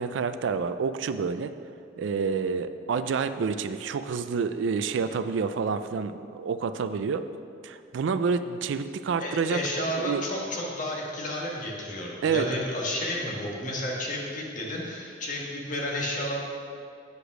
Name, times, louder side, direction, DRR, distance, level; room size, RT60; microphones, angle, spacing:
voice 1, 0.0-1.5 2.0-7.2 7.6-9.6 10.0-10.2 12.2-12.5, right 5 dB, 85° right, 11 dB, 0.4 m, -28 dB
voice 2, 9.2-16.4, left 1 dB, 45° left, -3 dB, 1.4 m, -31 dB
8.2 x 5.0 x 6.0 m, 2.4 s
head